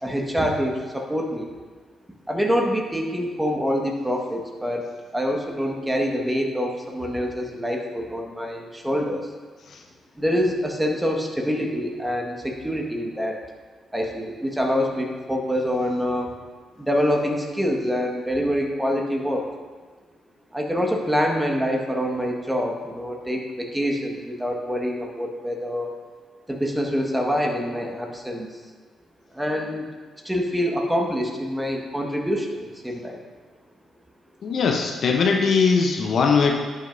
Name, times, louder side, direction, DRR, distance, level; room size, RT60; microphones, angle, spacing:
voice 1, 0.0-1.5 2.3-4.8 5.1-9.3 10.2-13.4 13.9-16.3 16.8-19.5 20.5-25.9 26.5-28.5 29.3-29.8 30.2-33.2, equal, 10° right, 1 dB, 1.6 m, -25 dB
voice 2, 34.4-36.5, left 5 dB, 60° left, 2 dB, 0.8 m, -20 dB
11.0 x 6.4 x 2.7 m, 1.4 s
hypercardioid pair, 45°, 0 cm